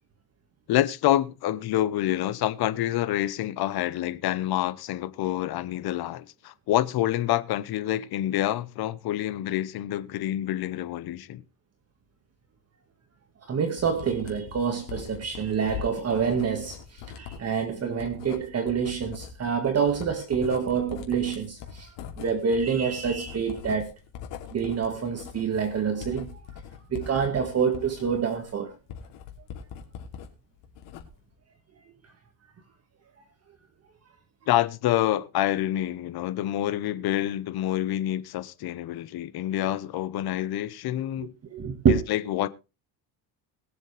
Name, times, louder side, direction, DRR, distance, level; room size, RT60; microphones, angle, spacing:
voice 1, 0.7-11.4 34.5-41.3 41.9-42.5, left 13 dB, 60° left, 1.1 m, -27 dB
voice 2, 13.4-21.9 22.2-23.9 24.5-26.3 26.9-28.7 41.5-42.0, right 6 dB, 35° right, 1.9 m, -27 dB
Writing, 13.8-30.3 30.6-31.3, left 8 dB, 85° left, 3.0 m, -42 dB
21.5 x 7.5 x 3.4 m
cardioid pair, 125°, 42 cm